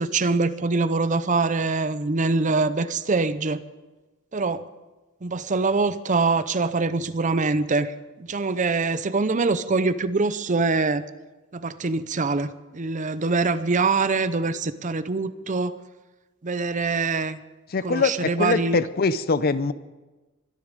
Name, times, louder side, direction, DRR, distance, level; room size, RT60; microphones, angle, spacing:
voice 1, 0.0-3.6 4.3-4.6 5.2-11.0 11.5-15.8 16.4-17.4 17.8-18.8, right 3 dB, 35° right, 14 dB, 0.7 m, -24 dB
voice 2, 17.7-19.7, left 4 dB, 45° left, 15 dB, 0.6 m, -23 dB
23.5 x 10.5 x 5.2 m, 1.2 s
head